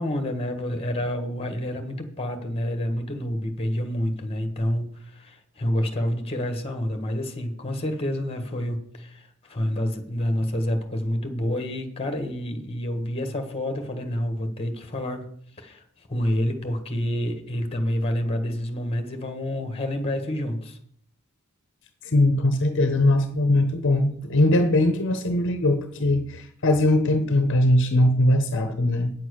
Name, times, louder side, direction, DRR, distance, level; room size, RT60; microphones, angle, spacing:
voice 1, 0.0-15.3 15.6-15.8 16.1-20.8, left 1 dB, 25° left, 7 dB, 1.6 m, -28 dB
voice 2, 22.0-29.1, left 1 dB, 60° left, 8 dB, 1.0 m, -21 dB
9.3 x 7.7 x 6.4 m, 0.65 s
head